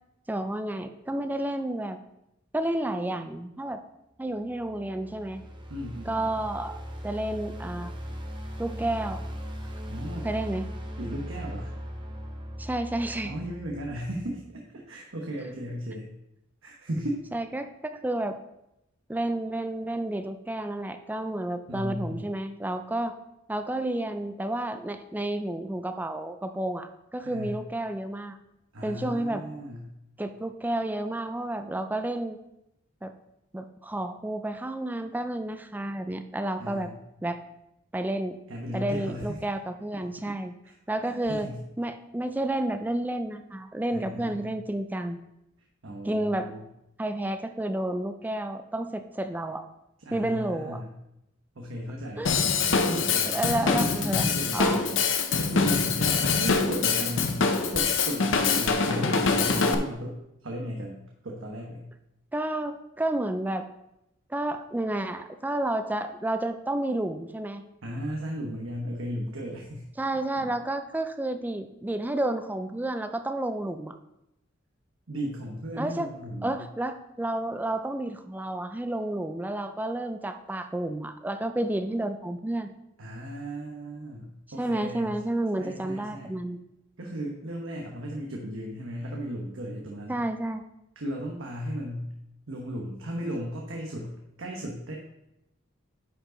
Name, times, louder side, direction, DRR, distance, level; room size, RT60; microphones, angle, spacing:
voice 1, 0.3-2.0 2.5-3.8 4.2-5.4 6.1-7.9 8.6-9.2 10.2-10.7 12.6-13.3 17.3-18.4 19.1-23.1 23.5-28.4 28.8-29.4 30.2-32.4 33.0-33.1 33.5-36.9 37.2-37.4 37.9-38.4 38.7-40.5 40.9-41.5 41.8-45.2 46.0-46.5 47.0-49.7 50.1-50.8 52.2-52.3 53.3-54.8 58.9-59.2 62.3-63.7 64.3-67.6 70.0-74.0 75.8-76.1 76.4-82.7 84.6-86.6 90.1-90.6, right 1 dB, 10° right, 8 dB, 0.4 m, -31 dB
sound 1, 4.3-14.5, equal, 25° right, 0.9 m, -39 dB
voice 2, 5.7-6.4 9.9-10.3 11.0-11.7 13.2-16.1 16.6-17.2 21.7-22.2 27.2-27.6 28.7-29.9 36.6-37.0 38.5-39.4 40.6-40.7 41.0-41.6 43.9-44.6 45.8-46.6 50.0-50.9 51.5-57.4 57.7-61.9 67.8-69.9 70.4-70.5 75.1-76.6 83.0-85.2 85.6-86.4 87.0-90.2 91.0-92.1 92.5-94.9, equal, 85° right, 0 dB, 1.1 m, -36 dB
Drum kit / Drum, 52.2-59.7, left 5 dB, 65° left, 0.7 m, -24 dB
10.0 x 4.8 x 3.9 m, 0.87 s
head